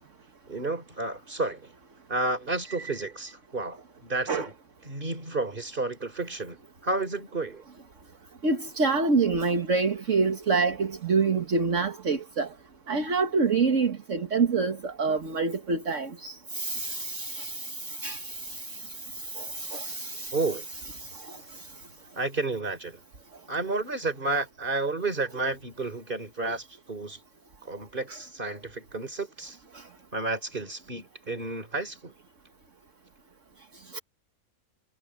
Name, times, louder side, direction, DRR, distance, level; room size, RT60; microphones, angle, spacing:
voice 1, 0.5-1.7 2.1-4.5 4.8-6.6 6.8-7.6 20.3-20.7 22.2-23.0 23.5-27.2 27.7-29.6 30.1-32.1, right 3 dB, 35° right, 3.7 m, -31 dB
voice 2, 8.4-12.5 12.9-18.8 19.2-20.4 21.0-21.4 28.1-28.2 33.9-34.0, right 4 dB, 55° right, 1.9 m, -27 dB
omnidirectional pair, 1.5 m